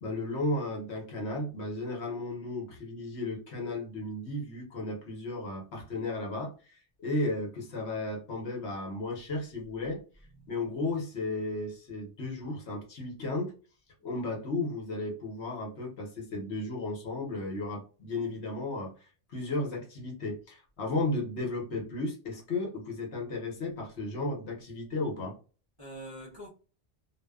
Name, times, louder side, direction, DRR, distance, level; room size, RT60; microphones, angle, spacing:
voice 1, 0.0-10.0 10.5-13.5 14.0-18.9 19.3-25.4, left 2 dB, 65° left, 1.1 m, -34 dB
voice 2, 10.2-10.9 25.8-26.5, right 1 dB, 30° right, 0.5 m, -46 dB
2.6 x 2.2 x 2.3 m
omnidirectional pair, 1.2 m